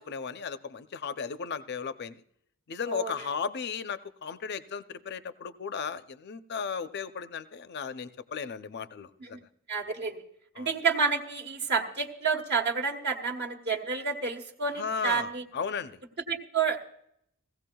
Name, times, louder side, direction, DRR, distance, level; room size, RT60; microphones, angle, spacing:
voice 1, 0.0-2.2 2.7-9.5 10.6-10.7 14.8-16.0, left 6 dB, 50° left, 12 dB, 0.5 m, -35 dB
voice 2, 9.7-10.2 10.6-15.4 16.3-16.8, right 5 dB, 50° right, 0 dB, 1.2 m, -29 dB
16.5 x 16.0 x 2.3 m, 0.72 s
head